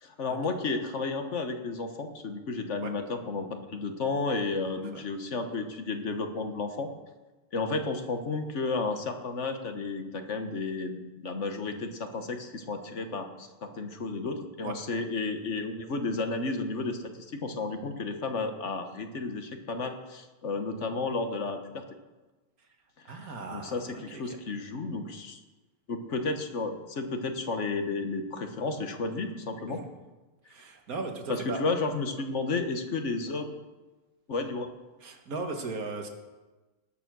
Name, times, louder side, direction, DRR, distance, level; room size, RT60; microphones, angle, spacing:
voice 1, 0.0-6.9 7.5-17.0 17.3-21.8 23.1-25.4 25.9-29.8 31.3-33.6 34.3-34.7, left 3 dB, 55° left, 6 dB, 1.4 m, -32 dB
voice 2, 23.1-24.4 29.7-29.9 30.5-31.6 35.0-36.1, right 3 dB, 85° right, 4 dB, 2.0 m, -37 dB
18.5 x 6.9 x 6.1 m, 1.2 s
omnidirectional pair, 1.5 m